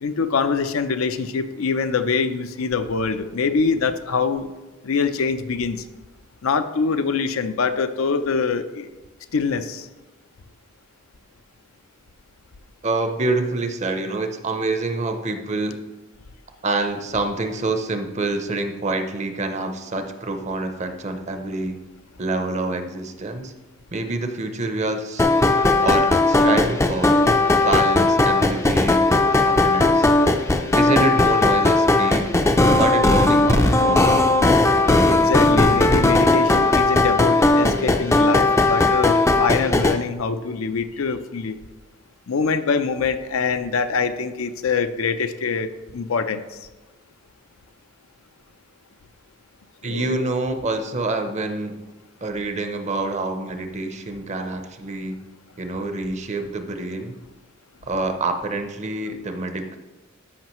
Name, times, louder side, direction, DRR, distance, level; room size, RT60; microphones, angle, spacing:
voice 1, 0.0-4.5 4.8-5.8 6.4-8.9 9.3-9.9 35.1-41.6 42.3-46.4 49.8-50.2, left 5 dB, 85° left, 10 dB, 0.5 m, -24 dB
voice 2, 12.8-15.8 16.6-21.8 22.2-23.5 23.9-25.3 25.8-29.0 29.3-30.1 30.7-32.3 32.8-34.2 49.8-51.8 52.2-55.2 55.6-57.2 57.8-59.8, right 2 dB, 35° right, 7 dB, 0.6 m, -26 dB
sound 1, 25.2-40.0, left 2 dB, 15° left, 0.4 m, -17 dB
13.0 x 5.5 x 3.0 m, 1.1 s
head